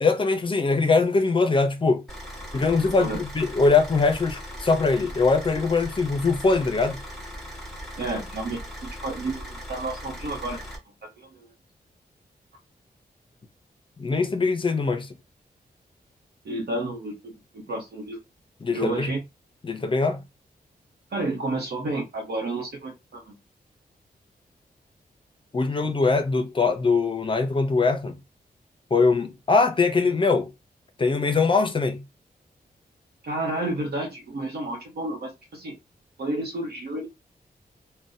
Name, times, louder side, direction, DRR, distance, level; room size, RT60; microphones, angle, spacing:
voice 1, 0.0-2.0 2.5-7.0 14.0-15.1 18.6-19.1 19.6-20.2 25.5-28.2 28.9-30.5 31.0-32.0, left 4 dB, 30° left, 0.5 m, -22 dB
Car / Idling, 2.1-10.8, equal, 5° left, 1.4 m, -39 dB
voice 2, 2.9-3.2 8.0-10.7 11.0-11.5 16.4-18.2 18.7-19.2 21.1-23.4 33.2-35.8 36.2-37.1, right 2 dB, 80° right, 0.8 m, -31 dB
3.9 x 2.1 x 2.6 m
wide cardioid pair, 135°, 16 cm